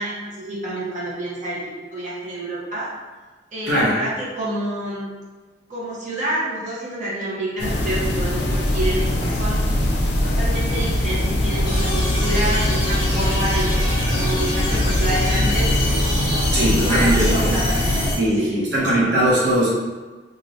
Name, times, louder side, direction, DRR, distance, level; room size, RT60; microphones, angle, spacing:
voice 1, 0.0-1.6 1.9-2.9 3.5-5.1 5.7-9.6 10.2-13.7 14.0-15.7 16.6-18.1 18.4-18.6, right 1 dB, 45° right, -7 dB, 0.8 m, -28 dB
sound 1, 7.6-18.1, left 1 dB, 65° left, 0.5 m, -21 dB
sound 2, 11.6-18.2, left 1 dB, 25° left, 1.1 m, -27 dB
voice 2, 16.5-17.5 18.2-19.7, right 1 dB, 70° right, -6 dB, 0.7 m, -19 dB
2.6 x 2.5 x 3.1 m, 1.3 s
head